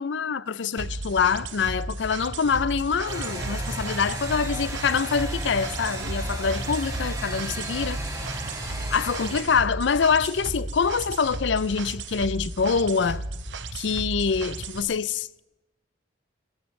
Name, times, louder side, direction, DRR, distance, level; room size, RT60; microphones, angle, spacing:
voice 1, 0.0-8.0 8.9-13.2 13.7-15.4, left 5 dB, 75° left, 0.5 m, -25 dB
sound 1, 0.8-14.8, right 2 dB, 85° right, 1.2 m, -35 dB
sound 2, 3.1-9.4, right 1 dB, 20° right, 4.3 m, -34 dB
23.0 x 17.5 x 3.2 m
head